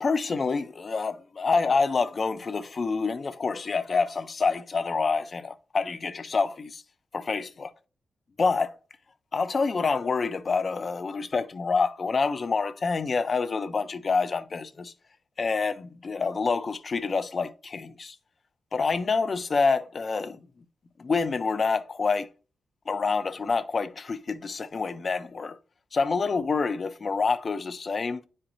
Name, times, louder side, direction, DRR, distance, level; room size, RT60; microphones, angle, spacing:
voice 1, 0.0-6.8 7.1-7.7 8.4-8.7 9.3-14.9 15.4-18.1 18.7-20.4 21.0-22.3 22.9-25.6 25.9-28.2, left 4 dB, 45° left, 0.5 m, -27 dB
9.7 x 4.4 x 2.6 m
cardioid pair, 95°, 0 cm